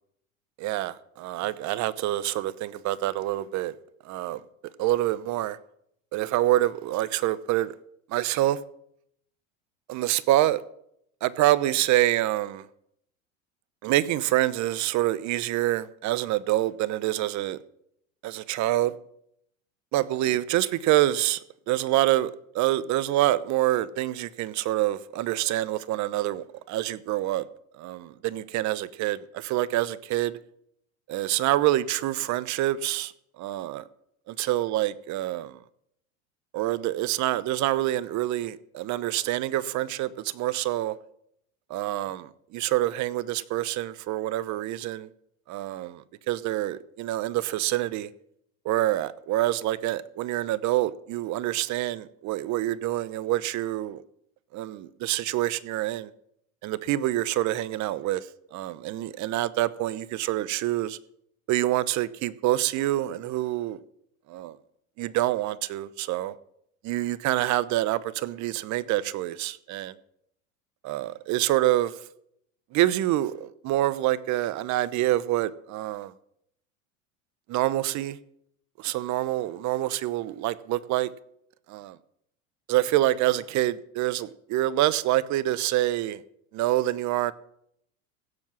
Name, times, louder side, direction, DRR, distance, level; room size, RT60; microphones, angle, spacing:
voice 1, 0.6-3.7 4.0-4.4 4.8-5.6 6.1-7.8 8.1-8.6 9.9-10.6 11.2-12.7 13.8-17.6 18.2-18.9 19.9-21.4 21.7-27.5 27.8-30.4 31.1-33.8 34.3-35.6 36.5-40.9 41.7-45.1 45.5-48.1 48.6-54.0 54.5-56.1 56.6-61.0 61.5-63.8 64.3-64.6 65.0-66.3 66.8-69.9 70.8-71.9 72.7-76.1 77.5-78.2 78.8-81.1 81.7-82.0 82.7-86.2 86.5-87.3, right 15 dB, 45° right, 0.9 m, -26 dB
16.0 x 7.3 x 7.4 m
hypercardioid pair, 100°, 39 cm